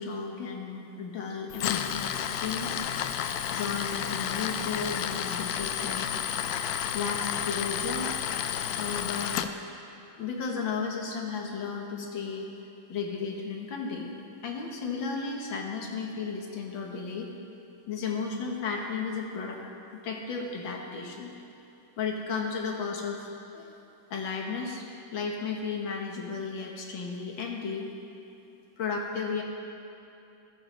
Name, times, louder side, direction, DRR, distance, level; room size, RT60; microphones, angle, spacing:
voice 1, 0.0-2.9 3.5-6.1 6.9-8.1 8.8-9.4 10.2-12.5 12.9-14.2 14.4-17.3 17.9-19.6 19.9-21.3 22.0-23.3 23.5-23.7 24.1-27.9 28.8-29.4, left 5 dB, 70° left, 1 dB, 2.0 m, -34 dB
Tools, 1.5-9.5, left 9 dB, 90° left, 0.8 m, -31 dB
14.0 x 13.5 x 3.3 m, 2.8 s
omnidirectional pair, 2.2 m